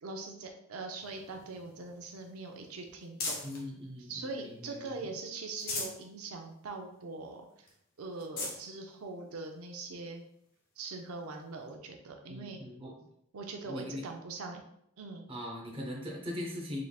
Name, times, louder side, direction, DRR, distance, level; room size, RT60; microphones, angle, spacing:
voice 1, 0.0-3.4 4.0-7.7 8.0-10.2 10.8-12.6 13.3-14.6 15.0-15.3, right 3 dB, 85° right, 3 dB, 0.5 m, -42 dB
sound 1, 1.0-3.7 4.2-5.0 5.4-6.1 6.5-6.6 7.0-7.1 7.7-7.8 8.1-8.6 9.4-9.5 11.3-11.4, left 3 dB, 45° left, 0.8 m, -40 dB
voice 2, 3.4-5.0 12.3-12.9 13.6-14.0 15.3-16.8, left 1 dB, 25° right, -1 dB, 0.7 m, -40 dB
3.7 x 3.4 x 2.3 m, 0.75 s
head